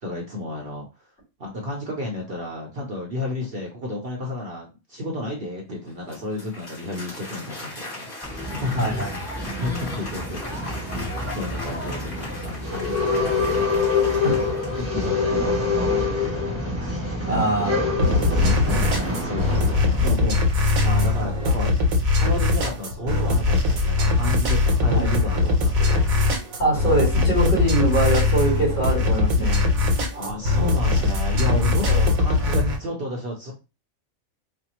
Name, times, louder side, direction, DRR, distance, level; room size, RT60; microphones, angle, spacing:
voice 1, 0.0-0.9 1.4-9.1 9.6-10.6 11.0-17.9 18.2-18.4 18.9-21.7 22.1-26.0 30.1-33.5, left 1 dB, 50° right, 0 dB, 0.9 m, -32 dB
Applause, 5.8-15.4, left 1 dB, 40° left, 1.6 m, -38 dB
Male speech man speaking / Chatter / Rattle, 8.2-20.1, left 3 dB, 10° right, 1.0 m, -26 dB
voice 2, 8.8-9.1 14.2-14.4 17.3-17.8 24.8-25.1 26.6-29.6 31.9-32.1, right 2 dB, 60° left, -7 dB, 2.7 m, -23 dB
sound 1, 18.0-32.8, left 3 dB, 75° right, 1.2 m, -21 dB
4.3 x 2.1 x 2.9 m, 0.29 s
omnidirectional pair, 1.4 m